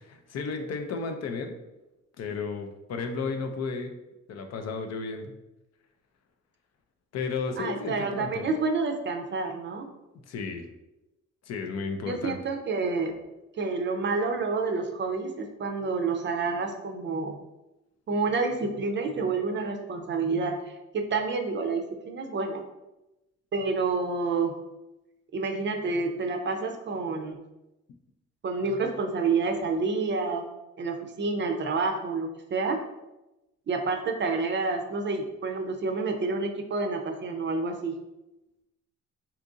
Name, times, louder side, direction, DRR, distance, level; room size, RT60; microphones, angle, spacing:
voice 1, 0.0-1.5 2.2-3.9 4.3-5.3 7.1-8.5 10.3-10.7 11.5-12.4, left 4 dB, 60° left, 6 dB, 0.5 m, -33 dB
voice 2, 7.6-9.9 12.1-13.2 13.6-17.4 18.1-22.6 23.5-24.6 25.3-27.4 28.4-30.5 30.8-32.8 33.7-38.0, right 4 dB, 40° right, 4 dB, 0.5 m, -29 dB
2.8 x 2.5 x 3.6 m, 0.97 s
cardioid pair, 90°, 30 cm